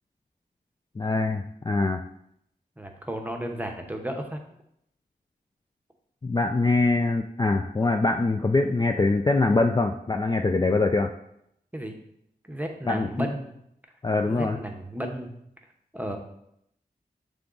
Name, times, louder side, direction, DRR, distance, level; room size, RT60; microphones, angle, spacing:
voice 1, 1.0-2.0 6.2-11.1 12.9-13.3 14.0-14.6, left 3 dB, 25° left, 4 dB, 0.3 m, -23 dB
voice 2, 2.8-4.4 11.7-11.9 12.5-13.5 14.2-15.3 15.9-16.2, equal, 10° right, 3 dB, 0.8 m, -33 dB
7.1 x 3.5 x 3.9 m, 0.75 s
wide cardioid pair, 85°, 17 cm